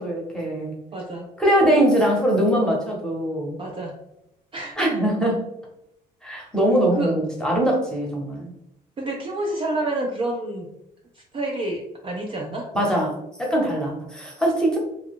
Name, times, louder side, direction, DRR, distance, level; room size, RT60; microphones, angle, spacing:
voice 1, 0.0-0.8 1.4-3.5 4.8-5.4 6.2-8.5 12.7-14.8, right 1 dB, 5° left, -2 dB, 0.8 m, -22 dB
voice 2, 0.9-1.3 3.6-3.9 4.5-5.0 7.0-7.1 9.0-10.7 11.3-12.7, right 2 dB, 30° right, -1 dB, 0.4 m, -28 dB
2.4 x 2.3 x 3.5 m, 0.83 s
cardioid pair, 110°, 17 cm